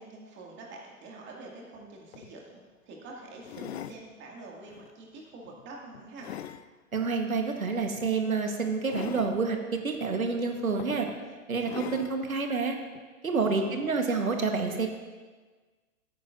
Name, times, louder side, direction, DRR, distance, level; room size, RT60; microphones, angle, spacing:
voice 1, 0.0-6.3 13.4-13.9, right 2 dB, 25° right, -2 dB, 2.3 m, -46 dB
sound 1, 1.8-1.9 2.1-2.3 3.4-4.0 4.7-4.9 5.4-6.6 7.9-8.1 8.9-9.4 10.2-10.3 10.8-11.2 11.6-12.2 12.9-13.0, left 10 dB, 50° left, 0.5 m, -41 dB
voice 2, 6.9-11.1 11.5-12.8 13.2-14.9, right 4 dB, 80° right, 4 dB, 1.4 m, -28 dB
15.0 x 9.4 x 2.6 m, 1.4 s
figure-of-eight pair, 105°, 41 cm